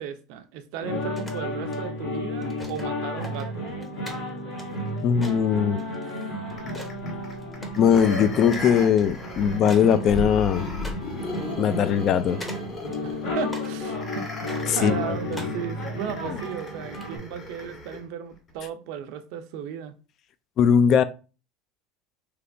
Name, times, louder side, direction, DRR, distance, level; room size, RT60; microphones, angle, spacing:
voice 1, 0.0-3.7 13.0-14.3 14.5-19.9, right 8 dB, 70° right, 0.5 m, -35 dB
sound 1, 0.8-17.2, left 1 dB, 70° left, 1.4 m, -33 dB
sound 2, 1.0-1.8 2.4-2.9 3.2-7.0 7.2-8.1 8.5-8.7 9.0-9.2 9.6-10.5 10.8-11.0 11.3-11.4 12.1-12.6 12.9-13.7 14.1-15.6 16.3-17.1, left 1 dB, 15° left, 0.8 m, -43 dB
voice 2, 5.0-5.8 7.8-10.7 11.6-12.4 14.7-15.0 15.3-15.5 16.3-16.4 20.6-21.0, left 8 dB, 50° left, 0.3 m, -20 dB
sound 3, 6.6-18.0 18.5-18.6, left 2 dB, 35° left, 1.7 m, -36 dB
3.2 x 2.8 x 2.5 m
supercardioid pair, 105°, 0 cm